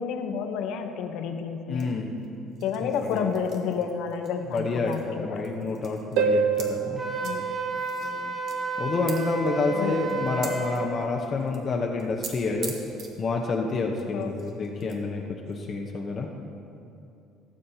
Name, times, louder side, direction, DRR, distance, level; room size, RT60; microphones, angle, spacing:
voice 1, 0.0-1.9 2.6-5.5 7.2-8.3 9.7-9.9 14.1-14.3, left 6 dB, 75° left, 6 dB, 0.8 m, -31 dB
voice 2, 1.7-2.2 2.8-3.3 4.5-7.0 8.8-12.7 13.2-16.3, left 3 dB, 40° left, 1 dB, 0.8 m, -28 dB
sound 1, 1.8-5.1 5.3-6.7 7.2-7.4 7.7-11.7 12.0-12.3 12.6-13.1 13.7-15.0 15.5-15.6, right 5 dB, 55° right, 1.3 m, -44 dB
Harp, 6.2-8.7 12.2-12.3, right 5 dB, 80° right, 0.7 m, -27 dB
Wind instrument woodwind instrument, 7.0-10.9, right 4 dB, 15° right, 1.0 m, -31 dB
16.5 x 7.3 x 2.8 m, 2.7 s
cardioid pair, 110°, 0 cm